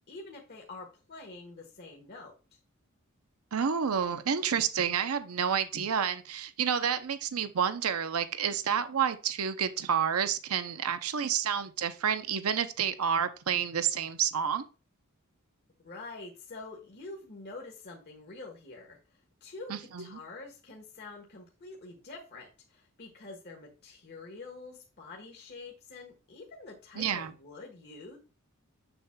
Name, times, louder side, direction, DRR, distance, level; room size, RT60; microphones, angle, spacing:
voice 1, 0.1-2.6 15.8-28.2, left 3 dB, 50° left, 1.3 m, -46 dB
voice 2, 3.5-14.6 19.7-20.1 27.0-27.3, right 7 dB, 85° right, 0.6 m, -29 dB
7.1 x 6.9 x 2.2 m
head